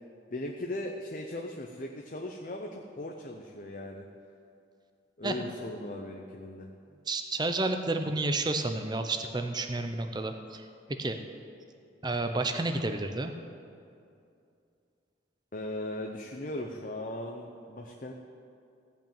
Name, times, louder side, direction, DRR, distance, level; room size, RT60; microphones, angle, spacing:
voice 1, 0.3-4.0 5.2-6.7 15.5-18.1, left 1 dB, 40° left, 1 dB, 0.7 m, -38 dB
voice 2, 7.1-10.6 11.0-11.2 12.0-13.3, right 2 dB, 20° right, 7 dB, 0.7 m, -30 dB
15.5 x 5.8 x 8.9 m, 2.5 s
head